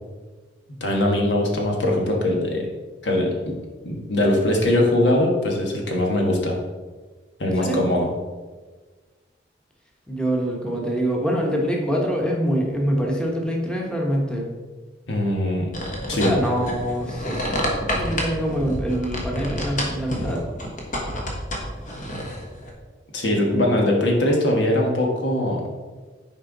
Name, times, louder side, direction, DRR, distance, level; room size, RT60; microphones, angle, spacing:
voice 1, 0.7-2.7 3.0-3.5 3.8-6.5 7.4-8.1 15.1-15.7 16.1-16.3 23.1-25.6, left 1 dB, 80° left, 0 dB, 1.6 m, -21 dB
voice 2, 10.1-14.4 16.1-20.4 23.5-23.6, equal, 5° left, -2 dB, 1.2 m, -25 dB
sound 1, 15.7-22.7, equal, 50° left, 1.5 m, -28 dB
9.9 x 4.5 x 4.0 m, 1.3 s
head